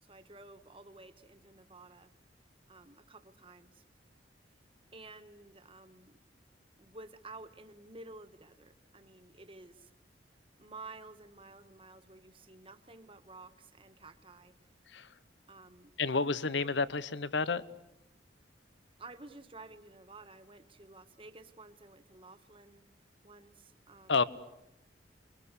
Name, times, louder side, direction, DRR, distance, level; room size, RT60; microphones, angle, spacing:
voice 1, 0.0-2.1 2.7-3.8 4.9-6.2 6.8-9.9 10.6-14.5 15.5-15.9 19.0-22.8 23.2-24.2, right 3 dB, 30° right, 8 dB, 1.6 m, -52 dB
voice 2, 16.0-17.6 24.1-24.2, left 4 dB, 70° left, 16 dB, 1.0 m, -30 dB
28.5 x 23.0 x 8.3 m, 0.85 s
head